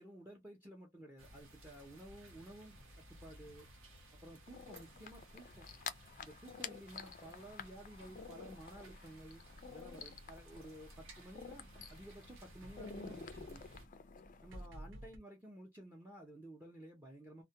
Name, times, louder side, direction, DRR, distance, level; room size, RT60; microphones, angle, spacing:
voice 1, 0.0-3.7 4.2-5.6 6.2-9.4 9.7-13.7 14.4-17.4, right 1 dB, 10° right, 0.5 m, -54 dB
sound 1, 1.2-13.9, right 1 dB, 80° right, 0.9 m, -58 dB
sound 2, 4.5-14.7, left 6 dB, 40° left, 0.3 m, -51 dB
sound 3, 7.5-15.2, right 1 dB, 60° right, 0.6 m, -57 dB
2.2 x 2.1 x 2.7 m
head